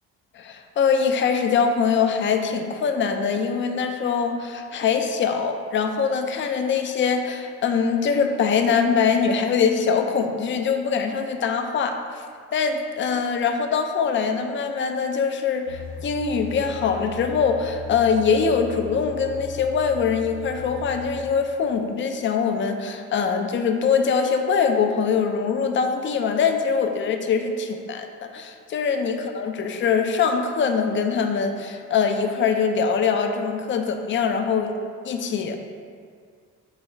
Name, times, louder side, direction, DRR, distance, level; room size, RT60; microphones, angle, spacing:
voice 1, 0.3-12.0 12.5-28.1 28.3-34.7 35.0-35.6, left 6 dB, 40° left, 5 dB, 0.4 m, -23 dB
sound 1, 15.7-21.2, left 6 dB, 65° right, 0.9 m, -38 dB
4.0 x 2.3 x 4.4 m, 2.1 s
cardioid pair, 90°, 30 cm